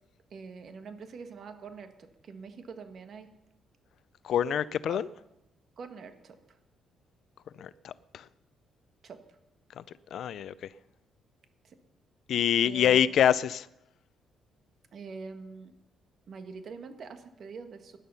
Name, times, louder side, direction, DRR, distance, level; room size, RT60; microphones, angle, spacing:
voice 1, 0.3-3.3 4.9-5.0 5.8-6.6 9.0-9.2 11.6-11.8 12.6-13.1 14.9-15.7 16.3-18.0, right 5 dB, 55° right, 1.7 m, -44 dB
voice 2, 4.2-5.1 7.6-8.2 9.8-9.9 10.1-10.5 12.3-13.7, left 9 dB, 70° left, 0.5 m, -26 dB
18.0 x 11.0 x 5.7 m
cardioid pair, 90°, 0 cm